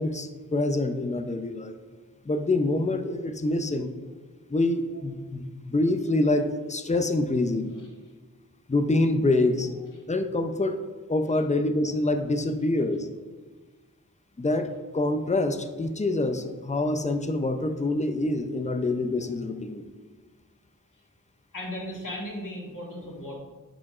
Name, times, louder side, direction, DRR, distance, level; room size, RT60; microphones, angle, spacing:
voice 1, 0.0-1.8 2.2-3.9 4.5-7.7 8.7-9.8 10.1-10.8 11.1-13.1 14.4-19.9, left 2 dB, 20° left, 7 dB, 0.5 m, -26 dB
voice 2, 21.5-23.4, left 1 dB, 65° left, -2 dB, 1.6 m, -36 dB
9.6 x 5.0 x 2.4 m, 1.4 s
wide cardioid pair, 65°, 34 cm